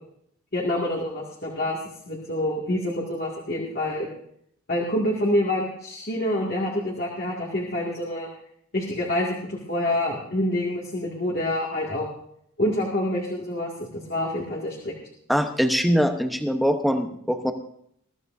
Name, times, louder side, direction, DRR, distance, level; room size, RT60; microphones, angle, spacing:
voice 1, 0.5-1.8 2.1-4.1 4.7-8.3 8.7-12.1 12.6-14.9, left 1 dB, 45° left, -3 dB, 2.2 m, -27 dB
voice 2, 15.3-17.5, equal, ahead, 5 dB, 1.0 m, -22 dB
22.0 x 14.0 x 2.7 m, 0.70 s
head